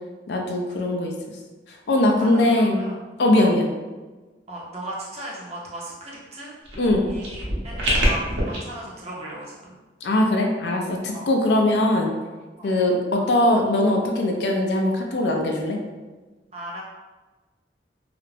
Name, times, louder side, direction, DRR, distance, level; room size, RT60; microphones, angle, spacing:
voice 1, 0.3-1.1 1.9-2.8 3.2-3.7 6.8-7.1 10.0-12.1 12.6-15.8, left 1 dB, 65° left, 1 dB, 0.4 m, -21 dB
voice 2, 2.2-3.0 3.3-3.5 4.5-6.5 7.1-9.7 11.1-11.3 12.6-12.7 16.5-16.8, right 1 dB, 35° right, -4 dB, 0.6 m, -36 dB
sound 1, 6.6-8.6, equal, 80° right, 0.8 m, -25 dB
2.4 x 2.0 x 3.1 m, 1.3 s
head